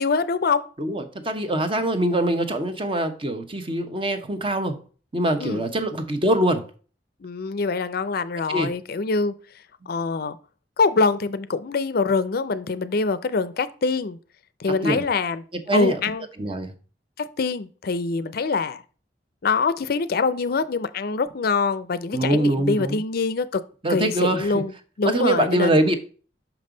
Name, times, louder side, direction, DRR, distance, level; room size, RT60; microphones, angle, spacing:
voice 1, 0.0-0.6 5.4-5.6 7.2-9.3 9.9-10.4 10.8-14.2 14.6-15.4 15.7-16.2 17.2-18.8 19.4-23.6 23.9-25.8, left 4 dB, 55° left, 0.5 m, -24 dB
voice 2, 0.8-4.8 5.1-6.6 8.5-8.7 14.8-15.0 15.7-16.0 16.4-16.7 22.1-23.0 23.8-24.5 25.0-26.0, right 1 dB, 30° right, 0.9 m, -23 dB
6.0 x 5.4 x 3.8 m
head